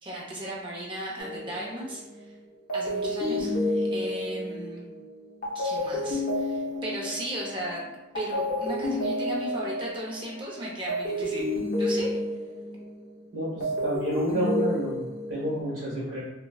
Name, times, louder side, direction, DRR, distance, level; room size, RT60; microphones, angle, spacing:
voice 1, 0.0-2.3 2.7-4.9 5.5-7.9 8.1-11.5 11.8-12.1, right 1 dB, 25° right, -4 dB, 0.7 m, -36 dB
sound 1, 1.2-2.2 2.7-7.9 8.1-13.1 13.4-15.6, left 1 dB, 45° left, 0.7 m, -30 dB
voice 2, 13.3-15.0 15.3-16.2, equal, 60° right, -9 dB, 1.1 m, -29 dB
4.0 x 2.2 x 2.3 m, 1.0 s
head